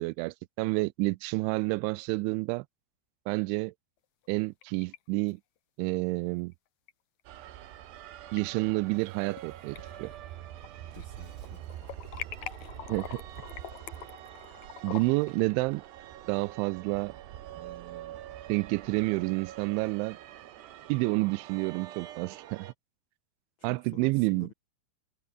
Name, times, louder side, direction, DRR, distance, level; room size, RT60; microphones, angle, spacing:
voice 1, 0.0-2.7 3.3-3.7 4.3-5.4 5.8-6.5 8.3-10.1 12.9-13.2 14.8-15.8 16.3-17.2 17.6-18.1 18.5-20.2 20.9-22.7 23.6-24.5, right 24 dB, 85° right, 2.9 m, -29 dB
sound 1, 4.3-5.0 5.3-5.4 6.9-7.0 8.0-8.4 8.9-9.4 9.8-11.1 11.4-15.3, left 11 dB, 70° left, 1.7 m, -44 dB
sound 2, 7.3-22.7, right 12 dB, 70° right, 3.5 m, -45 dB
voice 2, 10.9-11.6 23.6-24.5, left 5 dB, 40° left, 2.0 m, -49 dB
Shatter, 10.9-12.7, right 3 dB, 35° right, 8.4 m, -66 dB
omnidirectional pair, 5.4 m